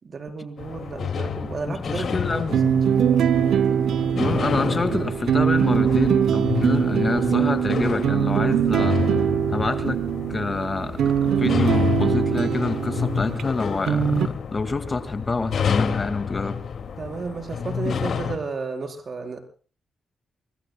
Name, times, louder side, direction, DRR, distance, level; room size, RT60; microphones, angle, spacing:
voice 1, 0.0-2.6 2.9-3.2 17.0-19.4, right 4 dB, 45° right, 5 dB, 4.4 m, -32 dB
sound 1, 0.6-18.4, left 7 dB, 65° left, 2.3 m, -29 dB
voice 2, 1.9-2.6 4.1-9.0 9.5-10.0 10.3-16.6, left 3 dB, 30° left, 10 dB, 2.0 m, -27 dB
sound 2, 2.5-13.5 13.8-14.3, right 9 dB, 80° right, 0.8 m, -22 dB
28.5 x 21.0 x 2.3 m, 0.39 s
cardioid pair, 90°, 0 cm